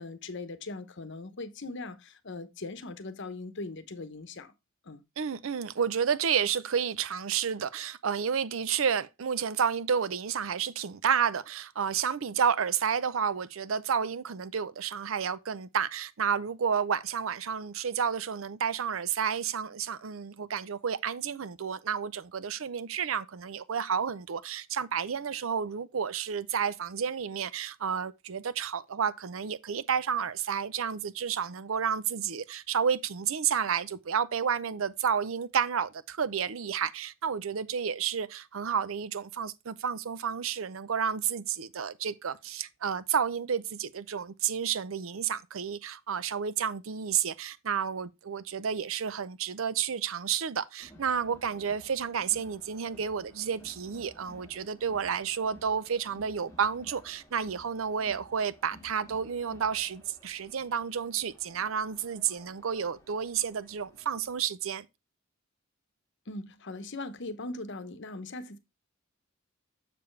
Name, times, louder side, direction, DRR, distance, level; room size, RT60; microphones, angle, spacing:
voice 1, 0.0-4.5 4.8-5.0 66.3-68.6, left 2 dB, 60° left, 1.0 m, -40 dB
voice 2, 5.2-64.9, right 7 dB, 80° right, 0.6 m, -31 dB
Crowd, 50.8-64.4, equal, 15° left, 2.3 m, -55 dB
6.9 x 6.8 x 3.2 m
head